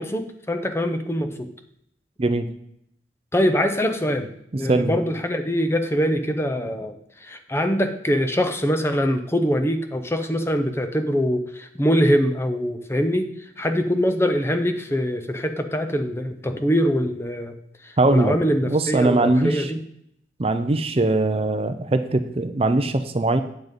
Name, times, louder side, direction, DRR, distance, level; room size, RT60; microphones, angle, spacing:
voice 1, 0.0-1.5 3.3-17.6 17.8-19.8, equal, 15° left, 7 dB, 0.7 m, -23 dB
voice 2, 2.2-2.5 4.5-5.0 18.0-18.4 18.7-19.7 20.4-23.4, right 2 dB, 30° right, 9 dB, 0.5 m, -21 dB
9.1 x 6.0 x 5.2 m, 0.73 s
head